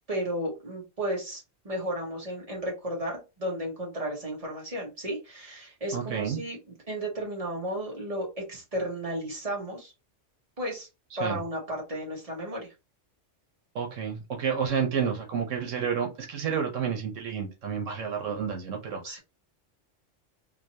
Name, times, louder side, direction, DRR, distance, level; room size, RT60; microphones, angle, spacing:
voice 1, 0.1-6.6 6.9-9.9 10.6-10.9 11.2-12.7 19.0-19.2, right 1 dB, 30° right, 1.6 m, -33 dB
voice 2, 5.9-6.4 11.2-11.4 13.7-19.2, right 7 dB, 85° right, 1.3 m, -30 dB
3.8 x 2.9 x 2.8 m
omnidirectional pair, 1.3 m